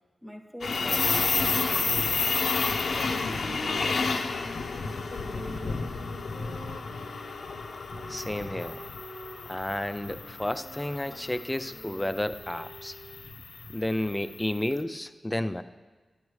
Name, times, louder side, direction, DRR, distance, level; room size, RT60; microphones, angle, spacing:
voice 1, 0.2-2.3 2.9-5.9, equal, 5° right, 3 dB, 1.0 m, -43 dB
sound 1, 0.6-14.7, left 4 dB, 75° left, 0.5 m, -31 dB
Wind instrument woodwind instrument, 4.7-13.3, right 2 dB, 80° right, 0.7 m, -48 dB
voice 2, 8.1-8.8 9.5-12.9 13.7-15.6, left 1 dB, 10° left, 11 dB, 0.3 m, -31 dB
12.0 x 9.5 x 3.2 m, 1.3 s
wide cardioid pair, 125°, 0 cm